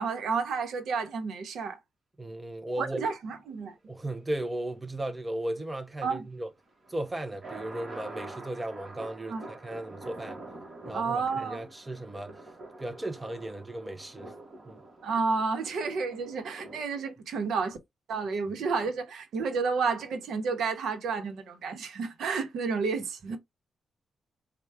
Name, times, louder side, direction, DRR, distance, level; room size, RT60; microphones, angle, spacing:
voice 1, 0.0-1.8 2.8-3.7 6.0-6.3 9.3-9.5 10.9-11.6 15.0-17.8 18.1-23.4, right 4 dB, 80° right, 0.8 m, -31 dB
voice 2, 2.2-3.1 3.9-6.5 6.9-10.4 10.9-12.4 12.8-14.4 14.6-14.8 23.3-23.4, right 1 dB, 10° right, 0.5 m, -36 dB
sound 1, 6.7-16.8, right 2 dB, 30° right, 1.2 m, -46 dB
4.5 x 2.2 x 3.3 m
wide cardioid pair, 170°, 0 cm